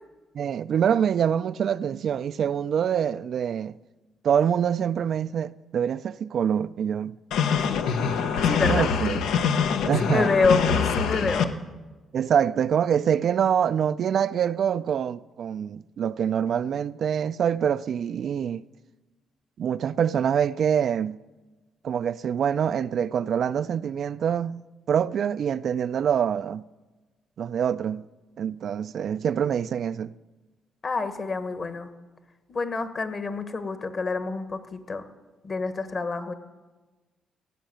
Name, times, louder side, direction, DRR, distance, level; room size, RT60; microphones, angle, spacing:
voice 1, 0.3-3.8 4.2-7.2 8.7-9.2 9.9-10.3 12.1-18.6 19.6-21.2 21.8-24.6 24.9-26.6 27.4-28.0 28.4-30.1, right 8 dB, 60° right, 0.3 m, -25 dB
sound 1, 7.3-11.4, left 6 dB, 85° left, 0.9 m, -24 dB
voice 2, 7.5-7.8 8.4-8.9 10.0-10.6 10.9-11.5 30.8-31.9 32.5-35.0 35.4-36.3, left 4 dB, 40° left, 1.3 m, -27 dB
16.0 x 6.5 x 9.2 m
cardioid pair, 90°, 0 cm